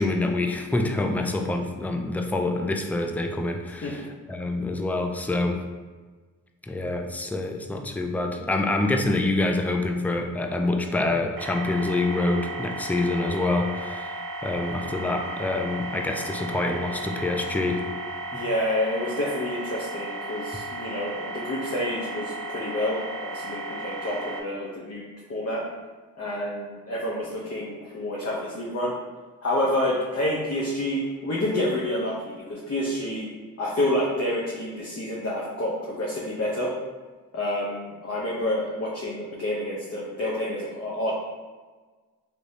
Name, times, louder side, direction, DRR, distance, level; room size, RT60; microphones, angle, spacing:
voice 1, 0.0-5.6 6.6-17.8 18.3-18.4, left 2 dB, 5° left, 3 dB, 0.3 m, -26 dB
sound 1, 11.4-24.4, right 2 dB, 80° right, 0.5 m, -35 dB
voice 2, 18.3-25.0 25.3-25.6 26.2-28.9 29.4-33.3 33.6-36.7 37.3-41.1, left 1 dB, 45° left, -5 dB, 0.8 m, -28 dB
3.3 x 2.9 x 2.7 m, 1.4 s
cardioid pair, 50°, 35 cm